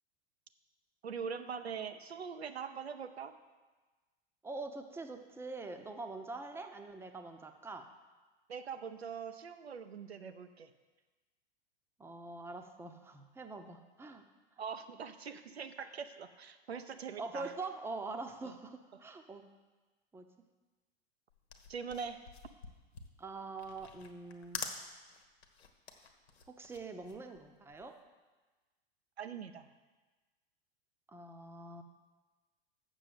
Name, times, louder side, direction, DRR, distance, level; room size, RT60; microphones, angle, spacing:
voice 1, 1.0-3.3 8.5-10.7 14.6-17.5 18.4-18.5 21.7-22.2 29.2-29.7, right 6 dB, 85° right, 10 dB, 0.7 m, -42 dB
voice 2, 4.4-7.9 12.0-14.2 17.2-19.5 20.1-20.3 23.2-24.6 26.5-28.0 31.1-31.8, right 3 dB, 10° right, 5 dB, 0.7 m, -44 dB
sound 1, 21.3-28.0, left 5 dB, 80° left, 1.2 m, -47 dB
7.1 x 6.8 x 7.6 m, 1.3 s
figure-of-eight pair, 90°, 31 cm